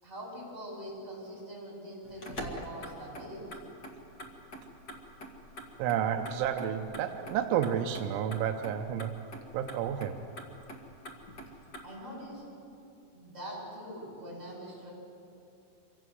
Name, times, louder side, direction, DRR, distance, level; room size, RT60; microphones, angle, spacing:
voice 1, 0.0-3.6 11.8-12.4 13.1-14.9, equal, 15° right, -5 dB, 8.2 m, -43 dB
Motor vehicle (road), 2.0-11.8, equal, 70° left, 0.9 m, -46 dB
voice 2, 5.8-9.2 9.5-10.2, right 9 dB, 85° right, 5 dB, 3.2 m, -31 dB
25.5 x 17.5 x 7.8 m, 2.7 s
omnidirectional pair, 5.3 m